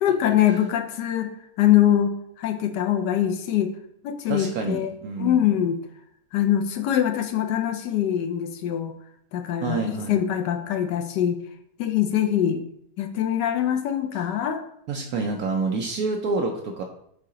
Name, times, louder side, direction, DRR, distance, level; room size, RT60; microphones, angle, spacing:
voice 1, 0.0-3.7 4.0-5.8 6.3-8.9 9.3-11.4 11.8-12.6 13.0-14.6, left 10 dB, 70° left, 7 dB, 1.1 m, -23 dB
voice 2, 4.3-5.4 9.6-10.2 14.9-16.8, right 4 dB, 70° right, 3 dB, 0.9 m, -28 dB
6.7 x 2.8 x 4.9 m, 0.71 s
omnidirectional pair, 2.0 m